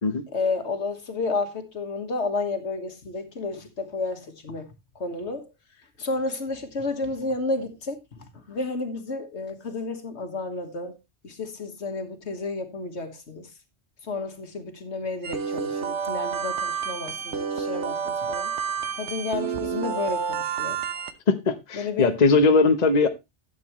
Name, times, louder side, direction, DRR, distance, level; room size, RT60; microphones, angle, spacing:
voice 1, 0.3-4.7 5.0-5.5 6.0-11.0 11.2-13.5 14.0-18.5 19.0-20.8 21.7-22.2, left 3 dB, 75° left, 1.8 m, -31 dB
sound 1, 15.2-21.1, right 6 dB, 80° right, 1.3 m, -29 dB
voice 2, 21.3-23.1, left 3 dB, 40° left, 1.1 m, -20 dB
12.5 x 8.4 x 3.1 m
omnidirectional pair, 1.2 m